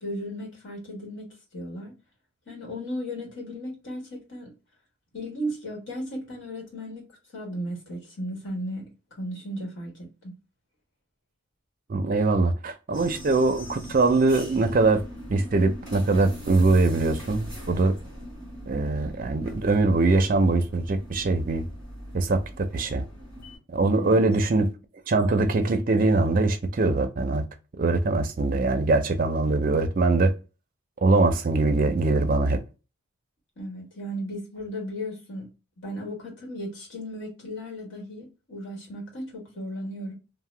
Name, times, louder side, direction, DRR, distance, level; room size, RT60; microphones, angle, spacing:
voice 1, 0.0-1.9 2.5-4.5 5.1-7.0 7.3-8.9 9.2-10.3 24.0-24.2 33.6-35.5 35.8-40.1, equal, 60° left, 1.3 m, -35 dB
voice 2, 11.9-15.0 15.3-17.9 18.7-21.6 22.1-23.0 23.7-24.7 25.1-27.4 27.8-30.3 31.0-32.6, right 3 dB, 40° right, 0.4 m, -22 dB
sound 1, 12.9-23.6, equal, 5° left, 1.6 m, -41 dB
2.8 x 2.1 x 3.2 m
head